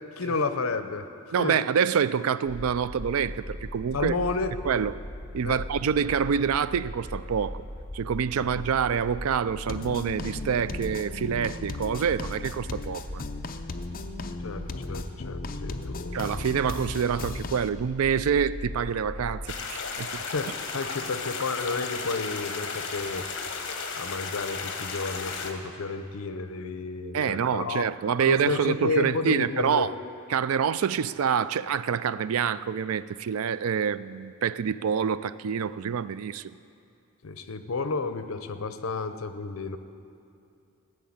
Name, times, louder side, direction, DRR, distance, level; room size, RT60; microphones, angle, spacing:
voice 1, 0.2-1.1 1.4-1.6 3.9-4.5 5.4-5.6 8.4-8.5 14.4-16.4 20.2-23.3 23.9-27.9 28.2-29.9 37.2-39.8, left 3 dB, 75° left, 10 dB, 0.8 m, -31 dB
voice 2, 1.3-4.1 4.6-4.9 5.3-7.6 7.9-13.2 16.1-20.2 27.1-29.9 30.3-36.6, right 7 dB, 80° right, 16 dB, 0.4 m, -27 dB
sound 1, 2.5-19.5, left 1 dB, 10° left, 1.5 m, -39 dB
sound 2, 9.7-17.7, left 3 dB, 40° left, 0.6 m, -37 dB
sound 3, 19.5-25.5, left 5 dB, 60° left, 1.3 m, -34 dB
15.5 x 6.6 x 8.6 m, 2.6 s
head